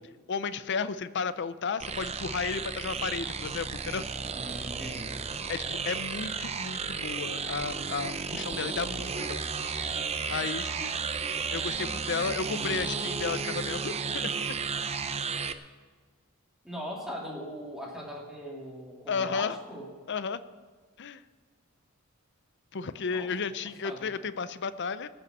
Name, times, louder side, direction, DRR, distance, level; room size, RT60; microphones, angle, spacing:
voice 1, 0.3-4.1 5.5-9.4 10.3-10.9 11.5-14.6 19.1-19.5 20.1-20.4 21.0-21.2 22.7-25.1, left 5 dB, 55° left, 13 dB, 0.6 m, -33 dB
sound 1, 1.8-15.5, right 5 dB, 30° right, 0.6 m, -33 dB
voice 2, 4.3-5.2 16.6-19.9 23.1-23.3 23.8-24.1, equal, ahead, -2 dB, 2.7 m, -40 dB
19.0 x 6.8 x 7.3 m, 1.4 s
head